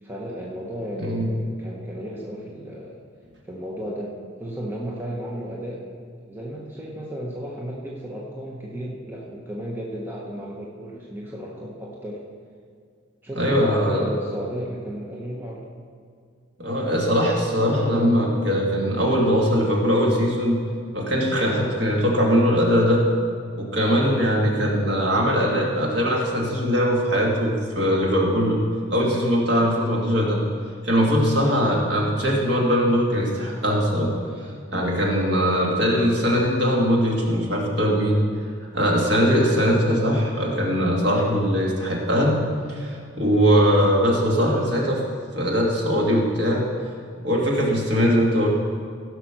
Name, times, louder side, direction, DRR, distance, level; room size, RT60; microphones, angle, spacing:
voice 1, 0.0-3.0 3.4-5.8 6.3-12.2 13.2-15.6, equal, 10° right, -4 dB, 1.0 m, -34 dB
voice 2, 13.4-14.0 16.6-20.6 20.9-23.0 23.6-28.6 28.9-30.4 30.8-34.1 34.4-38.2 38.7-42.4 42.7-45.0 45.4-46.6 47.2-48.5, equal, 55° right, -2 dB, 2.2 m, -21 dB
16.0 x 5.9 x 6.0 m, 2.2 s
head